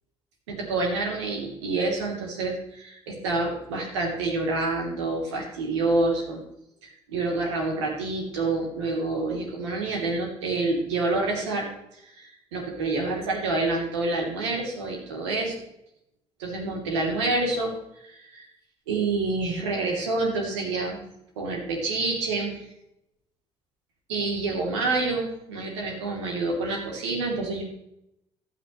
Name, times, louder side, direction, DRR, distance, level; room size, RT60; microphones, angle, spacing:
voice 1, 0.5-6.4 7.1-11.7 12.0-15.6 16.4-17.7 18.0-18.4 18.9-21.0 21.4-22.7 24.1-27.6, right 3 dB, 85° right, 0 dB, 2.9 m, -27 dB
15.0 x 10.0 x 3.1 m, 0.80 s
hypercardioid pair, 55°, 14 cm